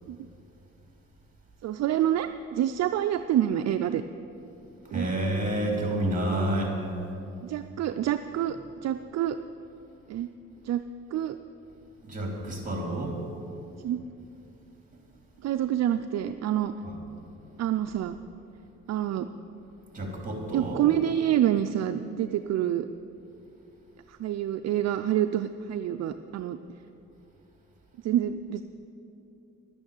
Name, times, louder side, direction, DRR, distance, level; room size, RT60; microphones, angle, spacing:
voice 1, 1.6-4.0 4.9-5.1 7.4-8.6 8.8-9.4 10.1-10.3 10.6-10.8 11.1-11.3 13.8-14.0 15.4-16.7 17.6-18.2 18.9-19.3 20.5-22.8 24.1-26.6 28.0-28.6, right 11 dB, 60° right, 9 dB, 0.5 m, -27 dB
voice 2, 4.9-6.7 12.0-13.1 16.8-17.0 19.9-20.8, right 1 dB, 25° right, 0 dB, 3.1 m, -29 dB
11.5 x 8.9 x 7.3 m, 2.9 s
cardioid pair, 90°, 30 cm